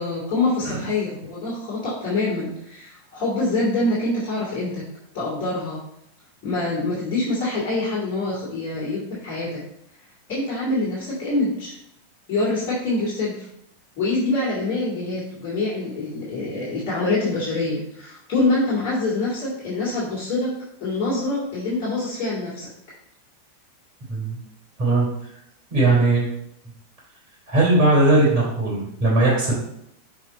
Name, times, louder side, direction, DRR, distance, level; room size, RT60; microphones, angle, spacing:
voice 1, 0.0-4.8 5.1-5.8 6.4-9.6 10.3-11.7 12.3-13.4 14.0-20.5 20.8-22.7, left 2 dB, 40° left, -9 dB, 2.6 m, -25 dB
voice 2, 24.1-24.4 24.8-25.1 25.7-26.3 27.5-29.5, right 2 dB, 40° right, -5 dB, 3.0 m, -19 dB
6.6 x 4.7 x 4.3 m, 0.75 s
figure-of-eight pair, 90°, 0 cm